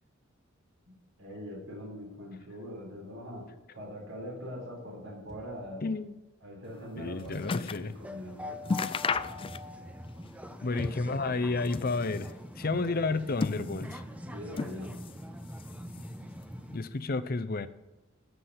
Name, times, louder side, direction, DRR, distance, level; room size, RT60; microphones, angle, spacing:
voice 1, 1.2-3.5 3.7-5.9 6.4-8.6 10.7-10.9 12.6-13.0 14.3-15.1, equal, 70° right, -2 dB, 4.0 m, -42 dB
sound 1, 5.3-5.7 7.2-7.6 9.1-9.5, left 1 dB, 35° right, 2.3 m, -53 dB
voice 2, 5.8-6.2 7.0-7.9 10.6-14.0 16.7-17.7, left 3 dB, 45° left, 13 dB, 0.7 m, -31 dB
sound 2, 6.7-7.9 8.3-8.4 8.6-9.9 10.2-11.2 11.5-12.4 13.0-14.0 14.5-15.2 15.5-16.3 17.0-17.1, left 4 dB, 25° left, 0.3 m, -35 dB
sound 3, 7.8-16.8, left 1 dB, 5° right, 0.7 m, -43 dB
13.5 x 6.2 x 8.2 m, 1.0 s
head